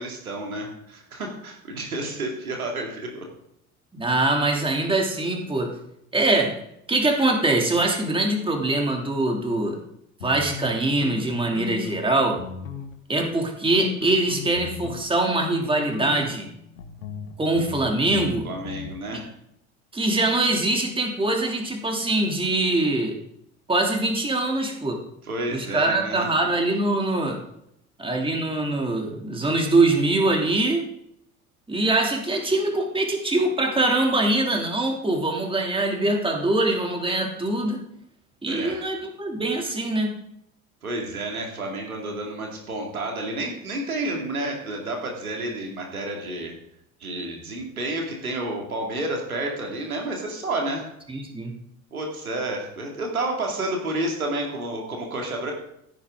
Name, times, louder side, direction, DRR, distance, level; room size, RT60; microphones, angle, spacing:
voice 1, 0.0-3.3 18.4-19.3 25.2-26.3 38.5-38.8 40.8-46.5 47.0-50.9 51.9-55.5, right 2 dB, 85° right, 1 dB, 2.5 m, -30 dB
voice 2, 3.9-5.8 6.1-6.6 6.9-9.8 10.2-12.4 13.1-16.5 17.4-18.5 19.9-23.2 23.7-25.0 25.5-27.4 28.0-30.8 31.7-37.8 38.4-40.1 51.1-51.5, right 2 dB, 10° right, 1 dB, 2.8 m, -23 dB
sound 1, 10.2-12.1 12.3-12.9 13.2-15.1 15.4-15.6 15.9-18.9, left 8 dB, 80° left, 1.7 m, -37 dB
16.0 x 9.9 x 3.8 m, 0.77 s
figure-of-eight pair, 70°, 42 cm